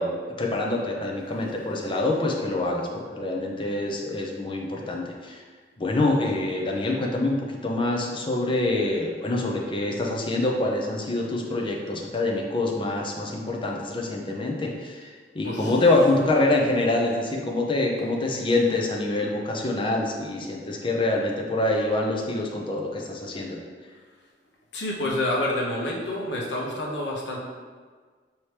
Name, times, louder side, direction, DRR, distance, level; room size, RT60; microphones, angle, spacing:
voice 1, 0.0-5.4 5.8-7.4 7.6-15.1 15.3-23.6, left 2 dB, 30° left, 0 dB, 0.5 m, -25 dB
voice 2, 24.7-27.4, left 1 dB, 75° left, -3 dB, 0.8 m, -28 dB
4.6 x 2.8 x 3.2 m, 1.5 s
head